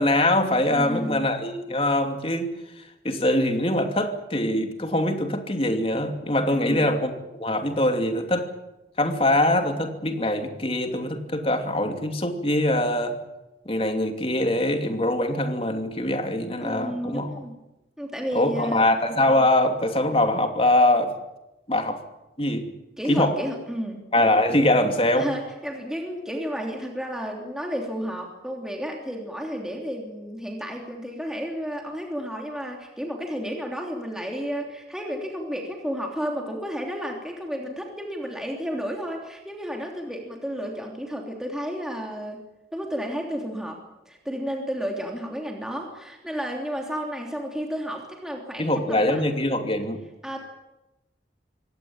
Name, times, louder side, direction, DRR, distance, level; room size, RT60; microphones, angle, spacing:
voice 1, 0.0-2.5 3.0-7.1 7.4-8.5 9.0-13.2 13.7-17.3 18.3-21.1 21.7-22.0 22.4-22.7 23.1-23.3 24.1-25.3 48.6-50.0, left 1 dB, 30° left, 5 dB, 2.7 m, -23 dB
voice 2, 0.7-1.2 6.5-6.9 16.6-17.5 18.0-18.9 23.0-24.0 25.2-42.4 42.7-49.2 50.2-50.4, equal, 5° right, 1 dB, 3.1 m, -32 dB
25.0 x 18.0 x 8.9 m, 0.98 s
head